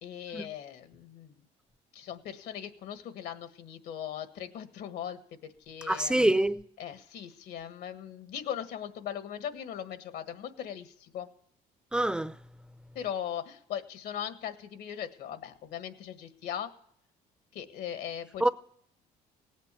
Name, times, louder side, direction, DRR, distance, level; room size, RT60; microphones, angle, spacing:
voice 1, 0.0-1.3 1.9-5.2 5.7-6.1 6.8-11.3 13.0-16.7 17.5-18.5, left 9 dB, 75° left, 1.6 m, -39 dB
voice 2, 5.9-6.6 11.9-12.3 18.4-18.5, right 1 dB, 5° right, 0.5 m, -25 dB
18.0 x 8.3 x 8.3 m
cardioid pair, 110°, 17 cm